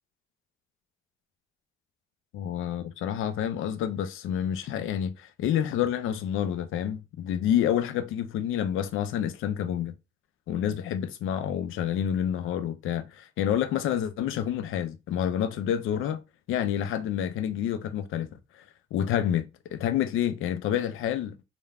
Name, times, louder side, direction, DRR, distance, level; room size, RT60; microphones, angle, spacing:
voice 1, 2.3-9.9 10.5-16.2 16.5-18.3 18.5-18.6 18.9-19.5 19.7-21.4, left 10 dB, 80° left, 0.4 m, -28 dB
3.1 x 2.1 x 2.3 m
supercardioid pair, 60°, 21 cm